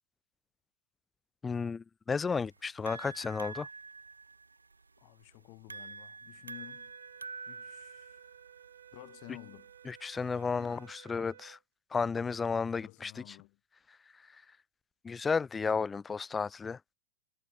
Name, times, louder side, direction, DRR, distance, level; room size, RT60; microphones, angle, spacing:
voice 1, 1.4-3.7 9.9-11.6 11.9-13.4 15.0-16.8, left 5 dB, 15° left, 1.1 m, -33 dB
sound 1, 2.2-11.0, right 4 dB, 80° right, 0.5 m, -48 dB
voice 2, 5.0-6.9 7.5-8.2 8.9-9.7 10.5-10.9 12.8-13.6, left 37 dB, 45° left, 2.3 m, -52 dB
sound 2, 6.4-11.6, right 10 dB, 60° right, 1.4 m, -56 dB
figure-of-eight pair, 90°, 0 cm